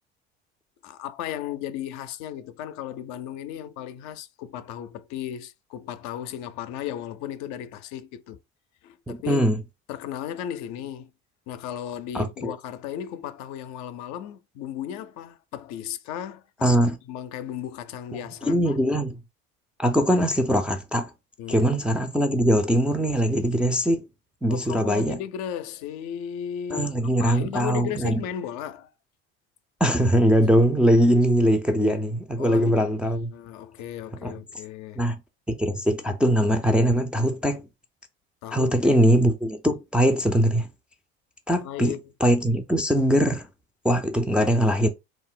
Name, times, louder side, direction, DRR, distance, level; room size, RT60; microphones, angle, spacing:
voice 1, 0.8-8.4 8.8-9.5 9.9-11.1 11.5-18.8 21.4-21.7 24.5-28.9 32.4-35.1 38.4-39.0 41.6-42.1, left 10 dB, 60° left, 0.5 m, -35 dB
voice 2, 9.1-9.6 12.1-12.5 16.6-17.0 18.5-19.2 19.8-21.1 21.5-24.1 24.4-25.2 26.7-28.2 29.8-33.3 34.2-34.4 35.0-35.2 35.5-37.7 38.5-40.7 41.5-41.9 42.2-43.5 43.8-44.9, equal, 5° right, 0.3 m, -21 dB
2.4 x 2.0 x 3.7 m
hypercardioid pair, 85°, 32 cm